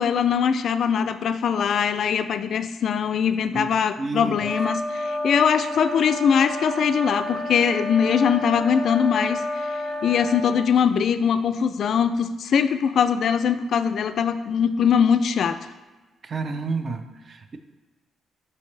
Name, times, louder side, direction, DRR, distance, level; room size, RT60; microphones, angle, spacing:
voice 1, 0.0-9.5 9.7-15.6, left 7 dB, 65° left, 11 dB, 0.3 m, -22 dB
voice 2, 3.5-4.3 16.2-17.6, right 3 dB, 45° right, 8 dB, 0.5 m, -30 dB
sound 1, 4.4-10.6, left 1 dB, 15° right, 1.0 m, -30 dB
6.8 x 5.0 x 3.3 m, 1.2 s
cardioid pair, 90°, 0 cm